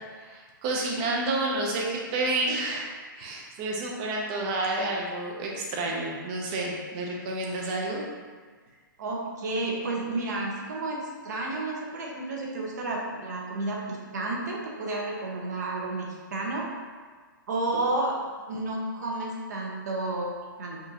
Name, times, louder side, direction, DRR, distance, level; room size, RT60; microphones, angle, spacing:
voice 1, 0.1-2.9 3.2-8.0, right 2 dB, 20° right, -1 dB, 0.5 m, -30 dB
voice 2, 9.0-16.7 17.5-18.2 18.5-20.8, right 2 dB, 50° right, -1 dB, 0.8 m, -31 dB
5.0 x 2.5 x 2.8 m, 1.5 s
hypercardioid pair, 170°, 12 cm